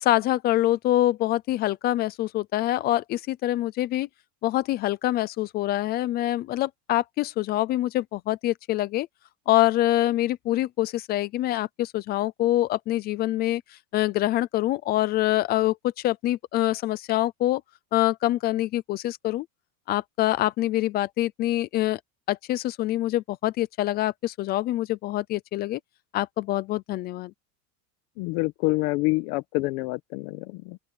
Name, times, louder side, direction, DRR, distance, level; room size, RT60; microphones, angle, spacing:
voice 1, 0.0-4.1 4.4-9.1 9.5-13.6 13.9-17.6 17.9-19.5 19.9-22.0 22.3-25.8 26.1-27.3, left 15 dB, 25° left, 0.3 m, -25 dB
voice 2, 28.2-30.8, left 24 dB, 60° left, 1.3 m, -27 dB
open air
supercardioid pair, 145°, 47 cm